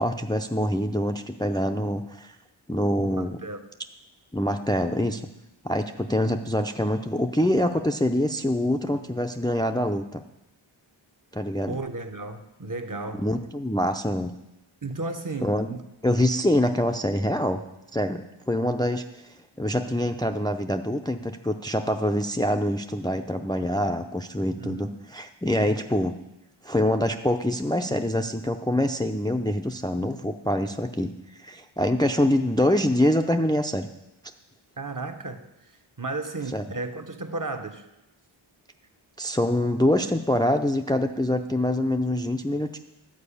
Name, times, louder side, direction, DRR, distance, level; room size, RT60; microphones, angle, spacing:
voice 1, 0.0-2.3 2.7-3.4 4.3-5.2 5.6-10.2 11.3-11.8 13.1-14.3 15.4-15.7 16.0-17.6 17.9-26.1 26.6-31.1 31.4-33.9 36.5-36.6 39.2-42.8, left 1 dB, 10° left, 5 dB, 0.5 m, -25 dB
voice 2, 3.0-3.7 11.7-13.3 14.8-15.9 24.6-25.0 34.8-35.5 36.0-37.9, right 3 dB, 40° right, 6 dB, 0.9 m, -34 dB
12.0 x 4.8 x 8.4 m, 0.90 s
wide cardioid pair, 45°, 50 cm